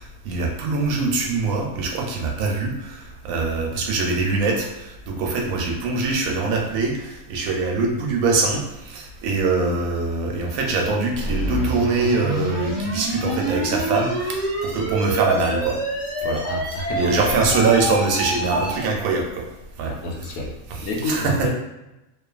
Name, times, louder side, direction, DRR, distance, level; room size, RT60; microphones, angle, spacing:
voice 1, 0.0-15.8 16.2-16.4 17.0-19.4 19.8-19.9 21.0-21.3, right 3 dB, 80° right, 0 dB, 1.0 m, -23 dB
sound 1, 11.1-18.9, right 1 dB, 45° right, 0.7 m, -27 dB
voice 2, 16.4-17.5 20.0-20.5 20.8-21.5, left 1 dB, 85° left, -1 dB, 1.1 m, -28 dB
2.6 x 2.4 x 2.3 m, 0.91 s
omnidirectional pair, 1.5 m